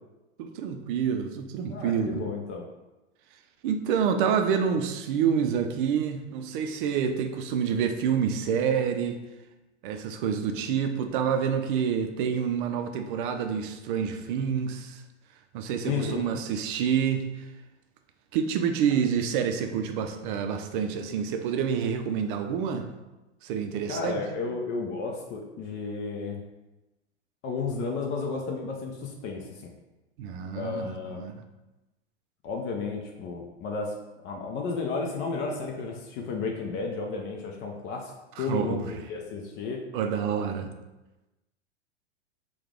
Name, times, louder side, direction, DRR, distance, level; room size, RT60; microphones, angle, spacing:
voice 1, 0.4-2.2 3.6-9.2 9.8-15.0 15.5-17.4 18.3-22.9 23.4-24.2 30.2-31.4 38.4-38.9 39.9-40.7, right 7 dB, 45° right, 6 dB, 0.5 m, -28 dB
voice 2, 1.7-2.7 15.8-16.3 23.9-26.4 27.4-29.7 30.5-31.2 32.4-33.9 34.2-39.8, left 4 dB, 35° left, 1 dB, 0.6 m, -33 dB
4.5 x 2.3 x 3.6 m, 1.0 s
hypercardioid pair, 100°, 35 cm